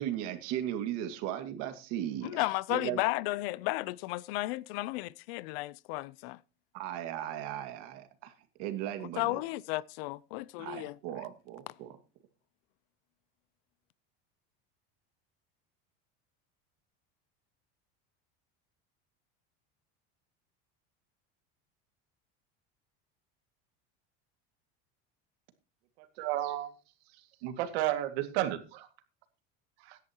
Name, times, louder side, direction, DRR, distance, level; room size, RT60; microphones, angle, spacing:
voice 1, 0.0-3.0 6.7-8.3 8.6-9.4 10.6-11.9, right 11 dB, 55° right, 2.1 m, -37 dB
voice 2, 2.2-6.4 9.0-11.0, left 20 dB, 75° left, 0.6 m, -34 dB
voice 3, 26.2-26.7 27.4-28.9 29.8-30.0, right 13 dB, 85° right, 2.1 m, -32 dB
16.5 x 10.5 x 2.9 m
cardioid pair, 175°, 31 cm